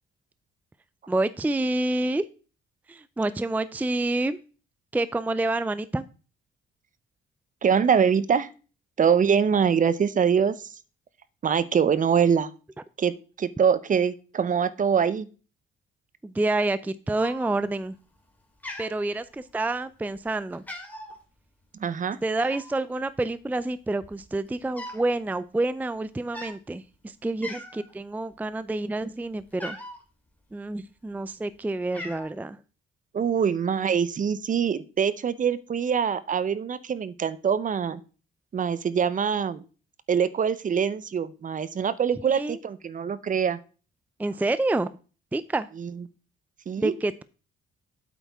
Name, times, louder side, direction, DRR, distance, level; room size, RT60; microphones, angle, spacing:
voice 1, 1.1-2.3 2.9-4.4 4.9-6.0 16.2-18.0 18.8-20.6 22.2-29.8 30.5-32.6 42.3-42.6 44.2-44.9 45.3-45.7 46.8-47.2, right 2 dB, 10° right, 15 dB, 0.4 m, -28 dB
voice 2, 7.6-8.5 9.0-10.7 11.4-12.5 13.0-13.1 13.4-15.3 21.8-22.2 33.1-38.0 38.5-39.6 40.1-43.6 45.8-45.9 46.7-46.9, right 7 dB, 40° right, 16 dB, 0.7 m, -24 dB
Cat, 17.2-17.8 18.2-18.4 18.6-19.7 20.1-20.3 20.5-21.2 22.4-22.8 23.6-23.7 23.9-25.1 25.4-25.6 26.2-26.6 27.0-27.1 27.4-27.9 28.3-30.0 30.8-31.4 31.7-32.3, left 1 dB, 10° left, 2.5 m, -40 dB
8.4 x 8.2 x 3.5 m, 0.36 s
cardioid pair, 90°, 20 cm